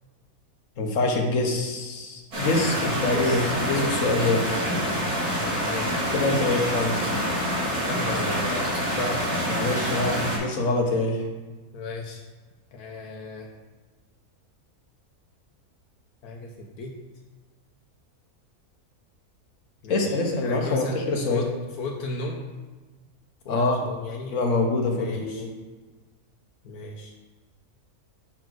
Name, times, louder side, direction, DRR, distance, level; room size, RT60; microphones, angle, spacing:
voice 1, 0.8-4.5 6.1-7.0 9.5-11.3 19.9-21.5 23.5-23.8 24.3-25.5, left 2 dB, 55° left, 1 dB, 1.4 m, -25 dB
sound 1, 2.3-10.4, equal, 75° right, 2.8 m, -26 dB
voice 2, 2.6-3.5 5.3-6.0 7.8-9.5 11.7-12.2 12.7-13.5 16.2-16.9 19.8-20.0 20.4-21.0 21.3-21.5 21.8-22.4 23.4-24.4 24.9-25.5 26.6-27.1, left 2 dB, 80° left, 1 dB, 1.3 m, -35 dB
5.6 x 4.4 x 6.1 m, 1.3 s
omnidirectional pair, 1.6 m